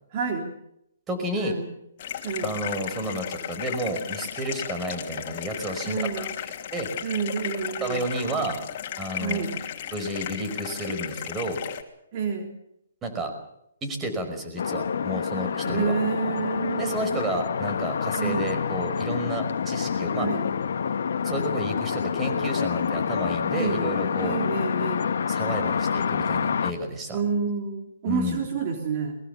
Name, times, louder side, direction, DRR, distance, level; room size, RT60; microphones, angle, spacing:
voice 1, 0.1-0.5 1.4-1.7 2.2-2.5 5.8-6.3 7.0-8.1 9.2-9.5 10.9-11.0 12.1-12.5 15.6-17.3 18.2-18.5 20.2-20.5 23.5-23.9 24.2-25.1 27.1-29.2, right 6 dB, 40° right, 2 dB, 3.6 m, -29 dB
voice 2, 1.1-1.5 2.4-6.3 6.7-6.9 7.8-8.6 9.0-9.4 9.9-11.6 13.0-13.3 13.8-15.9 16.8-20.3 21.2-24.4 25.3-27.2 28.1-28.4, right 1 dB, 15° right, 6 dB, 5.4 m, -31 dB
sound 1, 2.0-11.8, left 10 dB, 40° left, 2.9 m, -35 dB
sound 2, 14.6-26.7, left 7 dB, 65° left, 1.6 m, -27 dB
22.0 x 22.0 x 7.1 m, 0.78 s
hypercardioid pair, 145°, 0 cm